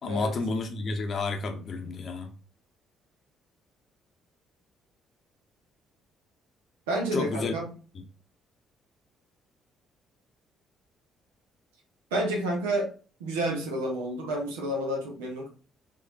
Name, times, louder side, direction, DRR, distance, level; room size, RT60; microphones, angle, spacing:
voice 1, 0.0-2.3 7.1-7.5, left 3 dB, 50° left, 0.8 m, -31 dB
voice 2, 6.9-7.7 12.1-12.9 13.2-15.5, right 1 dB, 85° right, 0.9 m, -29 dB
4.1 x 3.2 x 2.3 m
hypercardioid pair, 50°, 0 cm